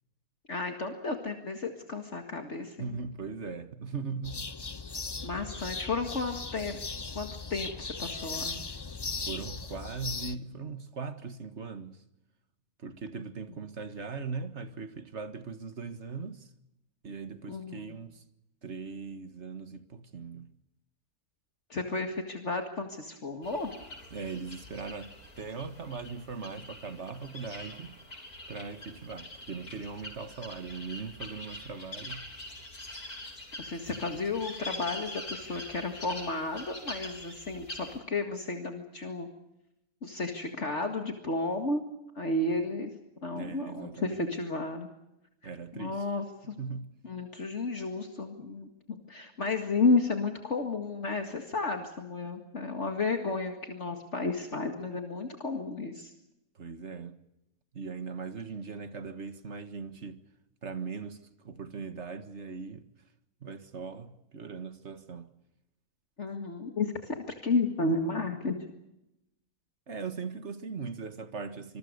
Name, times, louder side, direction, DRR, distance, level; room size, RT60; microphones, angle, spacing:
voice 1, 0.5-3.0 5.2-6.8 7.2-8.6 17.5-18.0 21.7-23.7 33.6-39.3 40.0-41.8 42.2-42.9 43.2-44.9 45.7-46.6 47.0-56.1 66.2-67.2 67.4-68.6, left 3 dB, 50° left, 2.3 m, -32 dB
voice 2, 2.8-4.4 9.0-12.0 12.8-16.5 17.0-18.2 18.6-20.5 24.1-28.0 28.5-32.2 43.3-44.3 45.4-46.0 46.6-46.9 56.6-57.2 57.7-60.2 60.6-62.9 63.4-65.3 69.9-71.8, right 5 dB, 50° right, 1.9 m, -39 dB
sound 1, 4.2-10.4, left 4 dB, 25° left, 0.6 m, -38 dB
sound 2, 23.4-38.0, left 1 dB, 80° left, 7.6 m, -44 dB
26.5 x 21.5 x 6.8 m
omnidirectional pair, 1.6 m